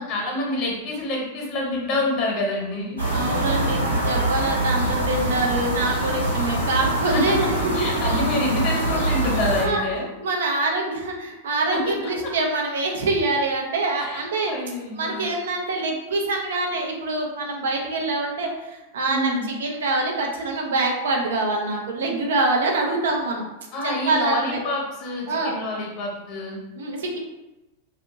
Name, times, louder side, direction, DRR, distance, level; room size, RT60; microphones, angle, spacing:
voice 1, 0.1-3.0 7.0-10.1 11.7-12.0 12.2-12.3 14.0-15.3 19.1-19.5 23.7-26.6, left 2 dB, 40° left, -1 dB, 1.1 m, -27 dB
sound 1, 3.0-9.7, right 1 dB, 90° right, 1.0 m, -24 dB
voice 2, 3.1-7.7 9.6-9.8 10.2-14.6 15.0-23.4 23.8-24.6 25.3-25.6 26.8-27.2, right 2 dB, 60° right, 1 dB, 0.6 m, -25 dB
2.6 x 2.4 x 3.7 m, 1.0 s
figure-of-eight pair, 90°, 0 cm